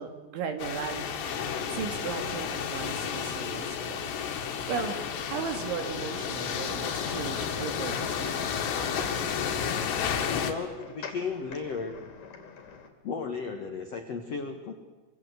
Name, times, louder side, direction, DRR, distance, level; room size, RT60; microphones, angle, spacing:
voice 1, 0.0-8.4, right 6 dB, 70° right, 6 dB, 4.7 m, -37 dB
sound 1, 0.6-10.5, left 7 dB, 65° left, 3.8 m, -32 dB
sound 2, 6.2-12.9, left 6 dB, 45° left, 3.7 m, -47 dB
voice 2, 10.4-12.0 13.0-14.7, left 5 dB, 85° left, 5 dB, 1.4 m, -34 dB
25.0 x 25.0 x 8.2 m, 1.2 s
omnidirectional pair, 5.7 m